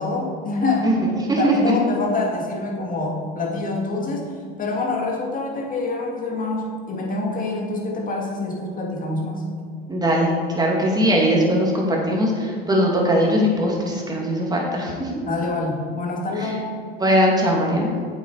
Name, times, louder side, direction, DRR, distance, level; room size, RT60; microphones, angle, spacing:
voice 1, 0.0-0.9 1.4-4.3 4.6-9.4 15.3-16.7, left 3 dB, 25° left, -1 dB, 2.5 m, -26 dB
voice 2, 0.8-1.8 9.9-10.3 10.5-15.1 16.4-16.5 16.9-17.9, equal, 15° right, -2 dB, 2.5 m, -20 dB
8.4 x 7.4 x 4.8 m, 2.1 s
hypercardioid pair, 85°, 30 cm